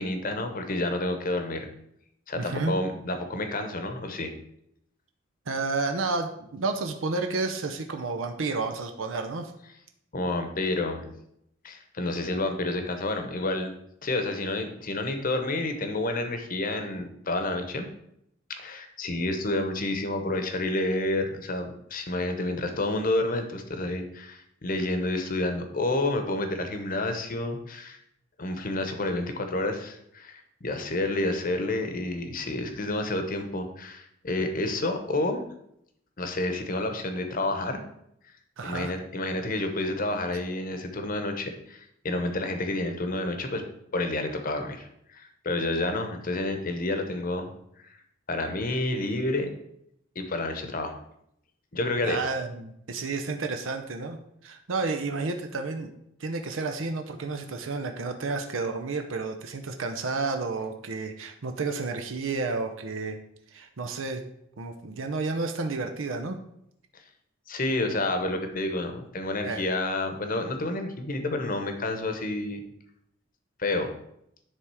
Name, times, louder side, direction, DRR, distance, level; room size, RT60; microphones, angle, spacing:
voice 1, 0.0-1.7 2.3-4.3 10.1-11.1 11.6-13.7 14.0-17.9 18.5-28.0 28.4-35.4 36.2-37.8 38.6-43.6 43.9-47.5 48.3-49.5 50.1-50.9 51.7-52.2 67.5-72.6 73.6-73.9, left 2 dB, 45° left, 6 dB, 0.9 m, -29 dB
voice 2, 2.4-2.7 5.5-9.5 38.6-38.9 52.0-54.2 54.4-55.9 56.2-63.2 63.5-64.2 64.6-66.4 69.4-69.6, right 3 dB, 85° right, 5 dB, 0.7 m, -31 dB
10.0 x 3.5 x 4.8 m, 0.76 s
head